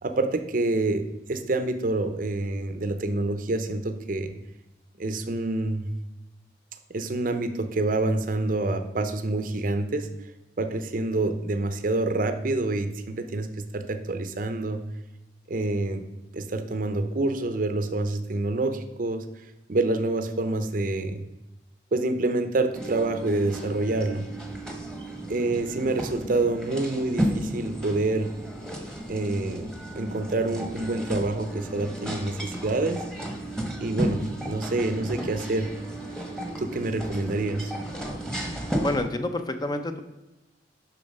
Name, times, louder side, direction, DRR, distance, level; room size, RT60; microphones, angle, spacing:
voice 1, 0.0-4.3 5.0-5.9 6.9-10.1 10.6-14.8 15.5-16.0 16.3-19.2 19.7-21.2 21.9-24.3 25.3-28.3 29.1-33.0 33.8-35.7 36.6-37.7, right 2 dB, 50° right, 8 dB, 0.6 m, -27 dB
sound 1, 22.7-39.0, right 1 dB, 5° left, 1.0 m, -33 dB
voice 2, 38.6-40.0, left 1 dB, 20° left, 8 dB, 0.5 m, -29 dB
7.0 x 5.6 x 5.3 m, 1.0 s
head